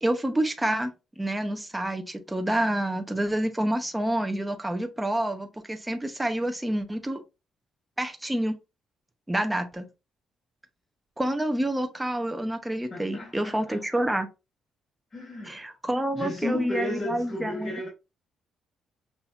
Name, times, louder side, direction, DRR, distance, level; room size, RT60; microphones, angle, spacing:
voice 1, 0.0-7.2 8.0-8.6 9.3-9.9 11.2-14.3 15.5-17.7, right 1 dB, 10° right, 0.7 m, -28 dB
voice 2, 12.9-14.0 15.1-15.8 16.1-17.9, left 1 dB, 40° left, 2.0 m, -34 dB
5.7 x 2.7 x 2.3 m
cardioid pair, 90°, 0 cm